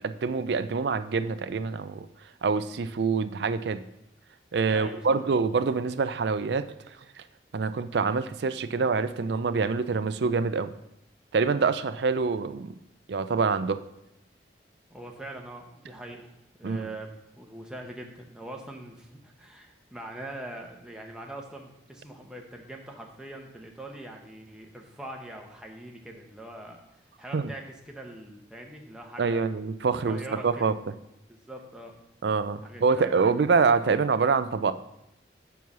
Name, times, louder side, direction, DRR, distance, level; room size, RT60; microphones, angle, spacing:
voice 1, 0.0-2.1 2.4-3.8 4.5-7.0 7.5-10.7 11.3-12.7 13.1-13.8 16.6-16.9 27.3-27.5 29.2-30.2 30.4-30.7 32.2-34.7, right 4 dB, 65° right, 12 dB, 0.4 m, -26 dB
voice 2, 4.7-5.2 14.9-16.3 16.6-29.5 30.1-30.6 31.3-31.9 32.6-33.6, right 1 dB, 5° right, 0 dB, 0.9 m, -43 dB
6.9 x 4.6 x 6.0 m, 0.83 s
head